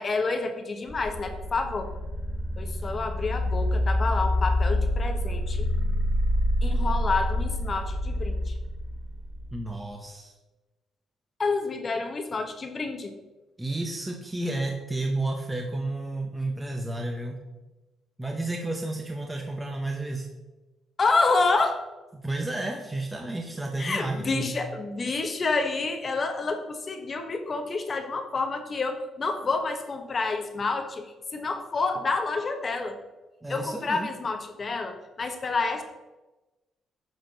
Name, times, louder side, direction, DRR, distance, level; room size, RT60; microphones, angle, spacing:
voice 1, 0.0-1.9 2.6-5.7 6.6-8.5 11.4-13.1 21.0-21.8 23.8-33.0 33.5-35.8, left 3 dB, 40° left, 6 dB, 1.0 m, -28 dB
sound 1, 0.9-9.7, left 1 dB, 20° left, 1.9 m, -27 dB
voice 2, 9.5-10.3 13.6-17.4 18.2-20.3 22.1-24.5 33.4-34.1, right 2 dB, 15° right, 2 dB, 0.9 m, -31 dB
11.5 x 4.3 x 4.0 m, 1.1 s
cardioid pair, 90°, 0 cm